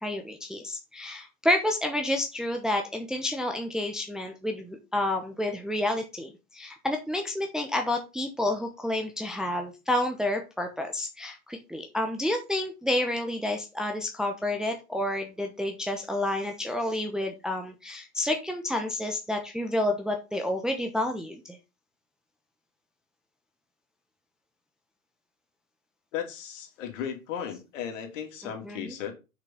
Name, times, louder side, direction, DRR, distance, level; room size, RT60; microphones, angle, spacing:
voice 1, 0.0-21.6 28.4-28.9, left 1 dB, ahead, 0.9 m, -30 dB
voice 2, 26.1-29.1, left 8 dB, 55° left, 3.1 m, -35 dB
6.6 x 6.0 x 5.6 m
hypercardioid pair, 125°, 45 cm